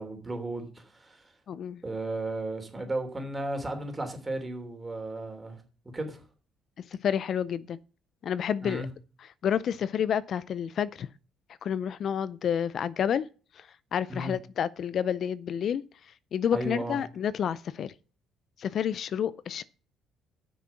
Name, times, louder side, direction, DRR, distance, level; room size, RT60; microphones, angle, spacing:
voice 1, 0.0-1.3 1.8-5.6 5.9-6.2 8.6-8.9 14.1-14.4 16.5-17.0, right 2 dB, 20° right, 3.1 m, -34 dB
voice 2, 1.5-1.8 6.9-7.8 8.2-8.9 9.4-11.1 11.6-13.3 13.6-15.8 16.3-17.9 18.6-19.6, left 8 dB, 55° left, 0.4 m, -29 dB
9.3 x 6.3 x 5.8 m
cardioid pair, 105°, 0 cm